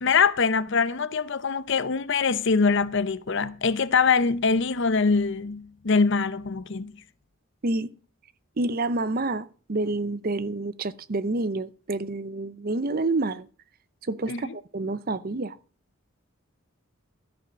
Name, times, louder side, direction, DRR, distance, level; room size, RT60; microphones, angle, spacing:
voice 1, 0.0-6.9 14.3-14.5, left 5 dB, 55° left, 0.7 m, -23 dB
voice 2, 8.6-13.5 14.1-15.6, right 2 dB, 40° right, 0.6 m, -28 dB
13.0 x 7.1 x 6.1 m
head